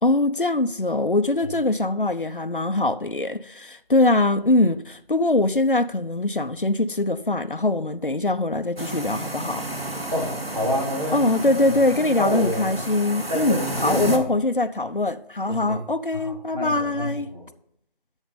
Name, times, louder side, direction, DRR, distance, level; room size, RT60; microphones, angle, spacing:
voice 1, 0.0-9.7 11.1-17.3, left 2 dB, 65° left, 0.8 m, -22 dB
sound 1, 8.8-14.2, right 1 dB, 85° right, 1.8 m, -31 dB
voice 2, 10.1-11.3 12.2-12.8 13.3-14.3 15.5-15.8 16.1-17.4, left 1 dB, 40° right, 3.4 m, -28 dB
11.5 x 6.4 x 5.5 m
figure-of-eight pair, 180°, 29 cm